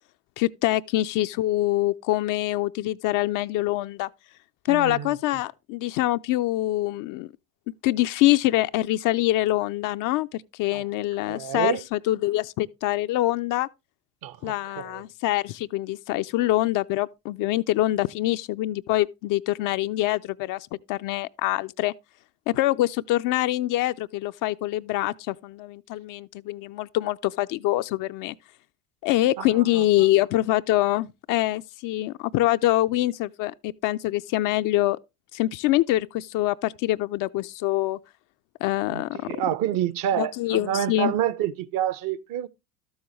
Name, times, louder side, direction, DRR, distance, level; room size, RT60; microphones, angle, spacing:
voice 1, 0.4-4.1 4.6-7.3 7.8-13.7 14.4-21.9 22.5-28.3 29.0-35.0 35.3-38.0 38.6-39.2 40.2-41.1, left 16 dB, 45° left, 0.4 m, -25 dB
voice 2, 4.7-5.1 10.7-10.8 11.3-11.8 14.2-15.0 29.4-29.8 38.9-42.5, right 11 dB, 50° right, 0.8 m, -28 dB
13.0 x 7.1 x 3.0 m
hypercardioid pair, 65°, 46 cm